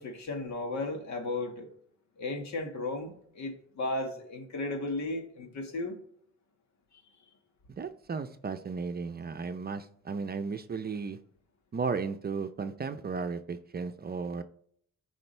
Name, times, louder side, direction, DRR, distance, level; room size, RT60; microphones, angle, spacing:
voice 1, 0.0-1.7 2.2-6.0 6.9-7.0, left 2 dB, 65° left, 1.8 m, -35 dB
voice 2, 7.7-11.2 11.7-14.4, right 5 dB, 30° right, 0.6 m, -35 dB
14.0 x 5.0 x 3.3 m
cardioid pair, 90°, 30 cm